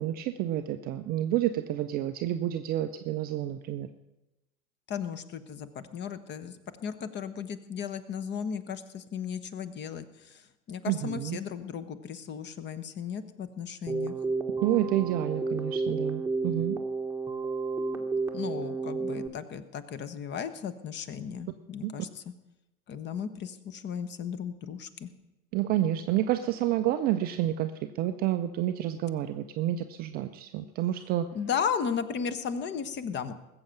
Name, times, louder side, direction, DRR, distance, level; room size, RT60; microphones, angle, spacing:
voice 1, 0.0-3.9 10.9-11.4 14.6-16.8 21.8-21.9 25.5-31.3, right 13 dB, 25° right, 9 dB, 0.4 m, -29 dB
voice 2, 4.9-14.2 17.9-22.2 22.9-25.1 31.3-33.3, left 7 dB, 25° left, 13 dB, 1.0 m, -35 dB
Keyboard (musical), 13.9-19.3, right 4 dB, 5° right, 1.3 m, -31 dB
20.5 x 7.8 x 5.9 m, 0.98 s
figure-of-eight pair, 90°, 43 cm